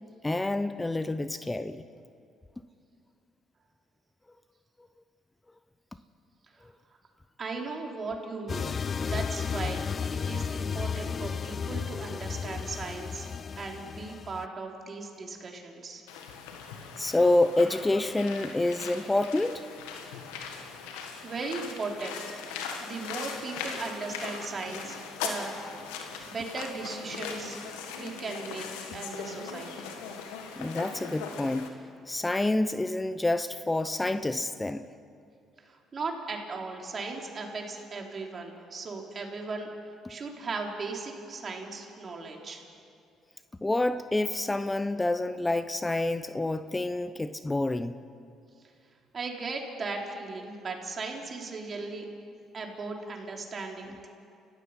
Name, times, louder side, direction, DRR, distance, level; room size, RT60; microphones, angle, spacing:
voice 1, 0.2-1.8 17.0-19.6 30.6-31.8 32.1-34.9 43.6-48.0, left 2 dB, 15° left, 12 dB, 0.7 m, -28 dB
voice 2, 7.4-8.7 9.0-9.8 10.1-13.3 13.6-16.0 21.2-22.4 22.8-25.6 26.3-27.6 27.9-28.7 28.9-29.9 35.6-39.7 40.1-42.6 49.1-52.1 52.5-54.1, right 3 dB, 45° right, 1 dB, 3.7 m, -37 dB
sound 1, 8.5-14.5, left 6 dB, 45° left, 0.4 m, -33 dB
sound 2, 16.1-31.7, left 6 dB, 85° left, 1.8 m, -40 dB
30.0 x 15.5 x 5.7 m, 2.4 s
hypercardioid pair, 55°, 0 cm